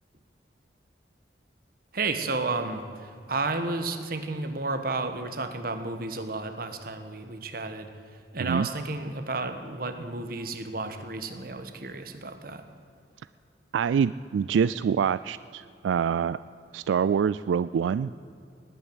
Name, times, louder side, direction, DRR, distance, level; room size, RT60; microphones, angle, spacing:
voice 1, 1.9-7.9 8.3-12.6, right 3 dB, 55° right, 8 dB, 1.3 m, -32 dB
voice 2, 13.7-16.4 16.7-18.1, right 7 dB, 90° right, 16 dB, 0.3 m, -25 dB
19.5 x 9.2 x 8.0 m, 2.5 s
head